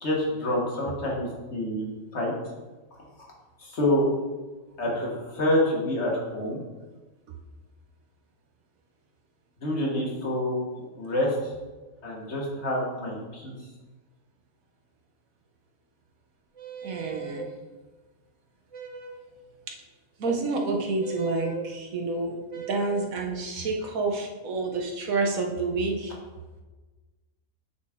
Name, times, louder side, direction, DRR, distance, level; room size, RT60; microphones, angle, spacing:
voice 1, 0.0-1.9 2.1-2.3 3.2-3.3 3.6-4.0 4.8-6.6 9.6-10.6 11.0-11.5 12.0-13.5, left 1 dB, 55° left, -3 dB, 1.7 m, -27 dB
sound 1, 16.6-17.5 18.7-19.3 21.0-21.7 22.5-23.1, right 7 dB, 50° right, 0.4 m, -38 dB
voice 2, 16.8-17.5 20.2-26.1, right 3 dB, 90° right, 2 dB, 1.4 m, -29 dB
8.5 x 4.0 x 3.7 m, 1.2 s
omnidirectional pair, 1.4 m